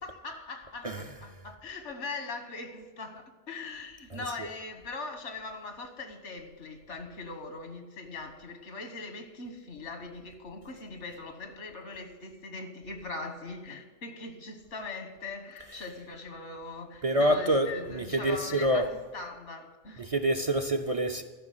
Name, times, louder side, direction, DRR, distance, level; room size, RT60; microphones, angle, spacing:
voice 1, 0.0-20.1, left 3 dB, 85° left, 1.7 m, -41 dB
voice 2, 4.1-4.5 17.0-18.9 20.0-21.2, right 1 dB, 40° right, 0.6 m, -27 dB
13.5 x 6.0 x 9.3 m
omnidirectional pair, 1.2 m